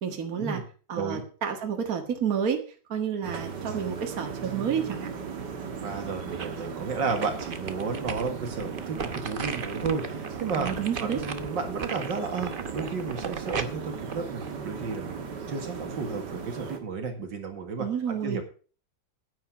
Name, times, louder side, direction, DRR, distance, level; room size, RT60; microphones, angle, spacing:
voice 1, 0.0-0.6 0.9-2.6 2.9-5.1 10.6-11.2 17.8-18.4, right 7 dB, 55° right, 5 dB, 2.0 m, -30 dB
sound 1, 3.2-16.8, right 5 dB, 70° right, 2.1 m, -37 dB
voice 2, 5.8-10.7 11.0-18.4, right 5 dB, 90° right, 4 dB, 2.6 m, -33 dB
sound 2, 5.9-6.7 7.1-15.2 15.6-15.7, right 5 dB, 40° right, 0.9 m, -37 dB
9.6 x 8.9 x 6.1 m, 0.39 s
omnidirectional pair, 1.9 m